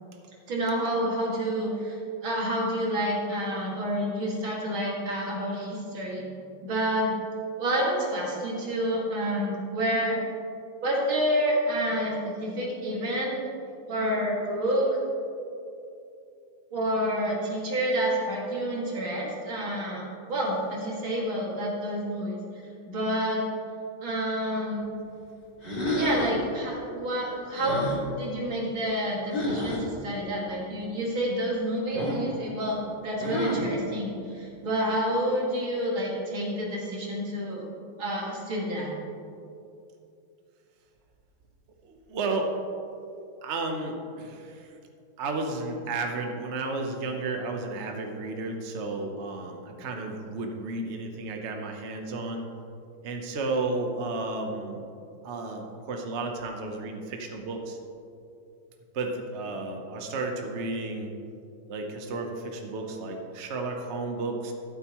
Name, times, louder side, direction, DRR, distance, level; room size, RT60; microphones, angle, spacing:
voice 1, 0.5-6.2 6.6-7.1 7.6-10.2 10.8-13.4 13.9-14.9 16.7-22.3 22.8-23.4 24.0-24.8 25.9-32.8 33.0-37.6 38.0-38.9, equal, 90° right, -4 dB, 3.1 m, -29 dB
sound 1, 25.6-26.4 27.5-28.0 29.3-29.8 31.9-32.3 33.2-33.7, left 1 dB, 25° left, 2.4 m, -29 dB
voice 2, 41.8-42.5 43.4-44.7 45.2-52.5 53.0-54.8 55.2-57.8 58.9-61.1 61.7-64.5, right 3 dB, 45° right, 3 dB, 1.1 m, -32 dB
12.5 x 12.0 x 3.1 m, 2.7 s
omnidirectional pair, 2.1 m